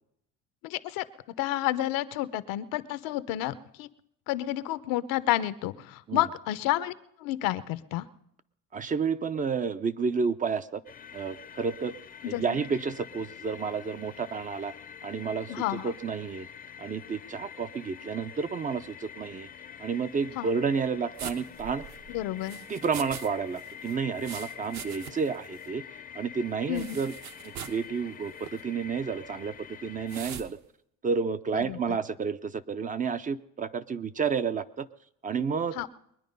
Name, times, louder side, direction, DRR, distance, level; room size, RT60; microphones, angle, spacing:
voice 1, 0.6-1.0 1.4-3.9 4.3-6.9 7.2-8.1 12.2-12.4 15.5-15.9 20.3-20.5 22.1-22.6 26.7-27.0 31.5-32.0 35.7-35.9, left 14 dB, 80° left, 14 dB, 0.8 m, -30 dB
voice 2, 8.7-10.8 11.1-11.9 12.2-14.7 15.0-15.5 15.8-16.5 16.8-19.5 19.8-21.8 22.7-25.8 26.1-27.1 27.7-29.5 29.8-30.6 31.0-34.9 35.2-35.7, right 5 dB, 25° right, 13 dB, 0.5 m, -30 dB
sound 1, 10.9-30.2, left 8 dB, 25° left, 0.5 m, -46 dB
sound 2, 21.2-23.3 23.6-25.4 25.6-25.7 26.7-27.8 28.4-28.6 30.1-30.5, right 8 dB, 55° right, 1.0 m, -42 dB
22.0 x 10.0 x 5.3 m, 0.74 s
cardioid pair, 125°, 33 cm